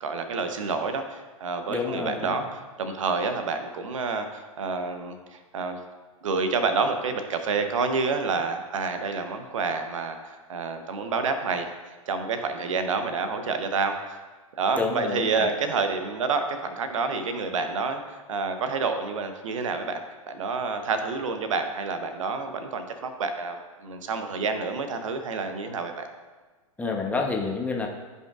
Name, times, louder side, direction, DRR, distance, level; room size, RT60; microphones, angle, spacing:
voice 1, 0.0-5.8 6.2-11.7 12.1-14.2 14.6-20.0 20.3-26.1, right 4 dB, 60° right, 7 dB, 0.9 m, -28 dB
voice 2, 1.7-2.3 14.8-15.5 26.8-27.9, left 4 dB, 10° left, 1 dB, 0.9 m, -28 dB
15.5 x 5.5 x 2.5 m, 1.3 s
figure-of-eight pair, 100°, 18 cm